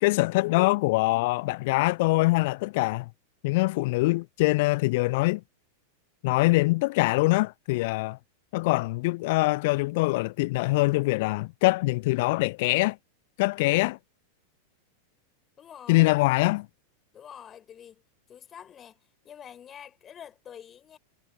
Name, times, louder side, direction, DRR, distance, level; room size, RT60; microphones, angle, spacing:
voice 1, 0.0-3.1 3.4-5.4 6.2-8.2 8.5-13.0 13.4-14.0 15.9-16.7, left 22 dB, 50° left, 0.4 m, -23 dB
voice 2, 15.6-16.1 17.1-18.0 18.3-21.0, left 9 dB, 25° left, 4.8 m, -47 dB
figure-of-eight pair, 90°, 0 cm